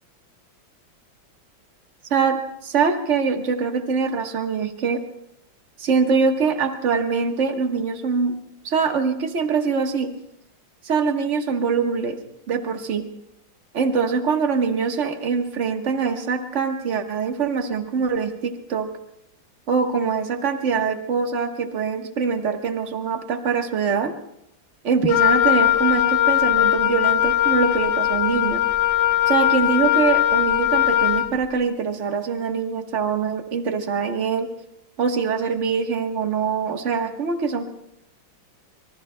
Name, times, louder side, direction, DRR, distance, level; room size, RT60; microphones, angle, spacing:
voice 1, 2.1-5.0 5.8-8.4 8.6-10.1 10.8-12.2 12.5-13.1 13.7-18.9 19.7-24.1 24.8-28.6 29.3-34.5 35.0-37.7, right 5 dB, 40° right, 5 dB, 1.4 m, -23 dB
Wind instrument woodwind instrument, 25.1-31.3, left 13 dB, 80° left, 0.6 m, -19 dB
26.0 x 24.0 x 2.2 m, 0.81 s
omnidirectional pair, 2.1 m